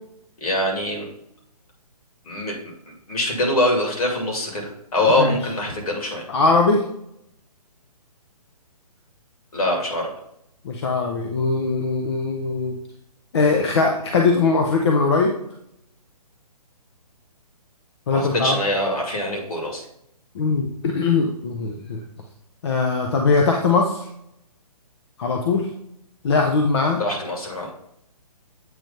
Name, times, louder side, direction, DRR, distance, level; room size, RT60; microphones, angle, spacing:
voice 1, 0.4-1.1 2.3-2.5 3.1-6.3 9.5-10.1 18.1-19.8 27.0-27.7, left 1 dB, 65° left, 0 dB, 2.4 m, -23 dB
voice 2, 5.0-5.4 6.3-6.8 10.6-12.7 13.3-15.4 18.1-18.6 20.3-22.0 22.6-24.1 25.2-25.7 26.2-27.0, left 4 dB, 45° left, 2 dB, 0.7 m, -20 dB
7.9 x 2.9 x 5.2 m, 0.75 s
hypercardioid pair, 160°, 20 cm